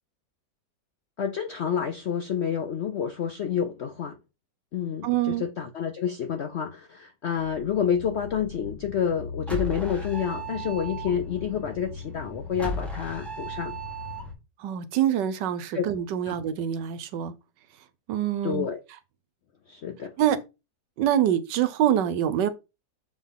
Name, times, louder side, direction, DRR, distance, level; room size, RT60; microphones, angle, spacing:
voice 1, 1.2-4.2 4.7-13.8 15.7-15.8 16.3-16.4 18.4-18.8 19.7-20.1, left 8 dB, 70° left, 0.6 m, -29 dB
voice 2, 5.0-5.4 14.6-17.3 18.1-18.7 20.2-20.4 21.0-22.5, right 10 dB, 80° right, 1.3 m, -25 dB
sound 1, 7.4-14.3, left 1 dB, ahead, 1.7 m, -36 dB
7.1 x 3.9 x 3.6 m
omnidirectional pair, 1.9 m